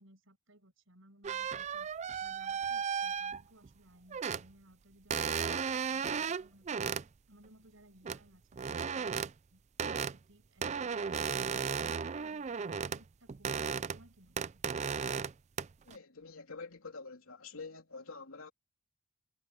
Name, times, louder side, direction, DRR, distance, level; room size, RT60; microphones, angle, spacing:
voice 1, 0.0-6.9 7.3-9.6 9.9-11.4 11.8-14.6, right 1 dB, 70° right, 6.6 m, -62 dB
sound 1, 1.2-3.7 4.1-4.5 5.1-7.0 8.0-8.2 8.5-9.3 9.8-10.2 10.6-13.0 13.3-14.0 14.4-15.3 15.6-16.0, right 6 dB, 35° right, 0.4 m, -35 dB
voice 2, 15.9-18.5, left 4 dB, 85° left, 3.3 m, -47 dB
head